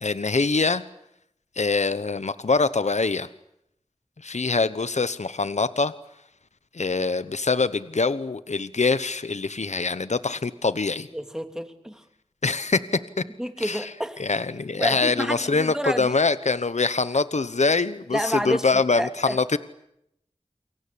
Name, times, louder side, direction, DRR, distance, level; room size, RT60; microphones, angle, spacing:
voice 1, 0.0-0.8 1.6-3.3 4.2-5.9 6.7-11.1 12.4-13.0 13.6-13.9 14.2-19.6, left 4 dB, 75° left, 14 dB, 1.0 m, -24 dB
voice 2, 11.1-12.0 13.4-14.2 14.8-16.1 18.1-19.4, equal, 5° right, 7 dB, 2.9 m, -29 dB
29.0 x 23.5 x 8.5 m, 0.78 s
wide cardioid pair, 55°, 12 cm